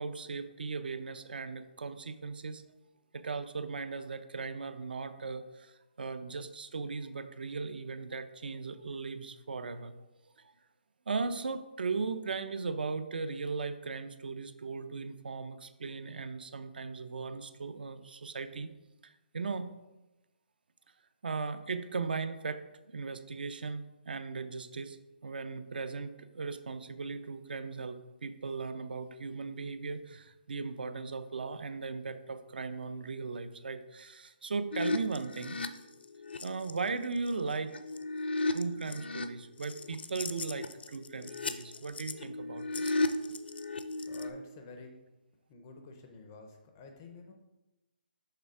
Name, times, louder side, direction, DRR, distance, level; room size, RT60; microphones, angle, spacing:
voice 1, 0.0-2.6 3.1-10.0 10.4-10.5 11.1-18.7 19.0-19.7 21.2-22.6 22.9-35.6 36.4-37.8 38.5-43.1, right 4 dB, 65° right, 12 dB, 0.5 m, -38 dB
sound 1, 34.7-36.7 37.3-39.3 39.6-44.3, left 2 dB, 80° left, 0.5 m, -35 dB
voice 2, 44.1-45.0 45.5-47.3, left 3 dB, 15° left, 3 dB, 0.4 m, -50 dB
6.6 x 3.3 x 4.8 m, 1.0 s
hypercardioid pair, 180°, 5 cm